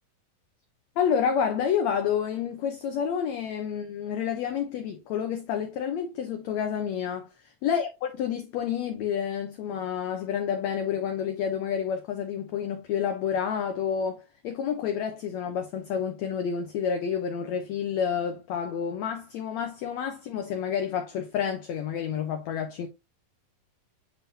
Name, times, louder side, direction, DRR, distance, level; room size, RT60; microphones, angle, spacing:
voice 1, 1.0-7.3 7.6-22.9, left 8 dB, 70° left, 1.7 m, -29 dB
9.1 x 3.7 x 2.8 m
omnidirectional pair, 4.0 m